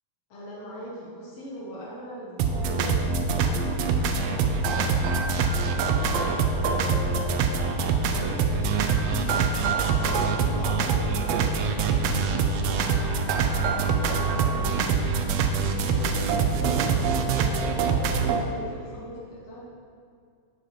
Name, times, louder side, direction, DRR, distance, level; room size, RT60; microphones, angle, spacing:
voice 1, 0.3-4.9 5.3-7.5 7.9-8.7 9.0-9.3 10.1-13.1 13.6-15.2 15.8-19.6, equal, 60° left, -6 dB, 1.9 m, -40 dB
sound 1, 2.4-18.4, right 5 dB, 85° right, 1.5 m, -24 dB
6.7 x 5.0 x 5.8 m, 2.3 s
omnidirectional pair, 3.5 m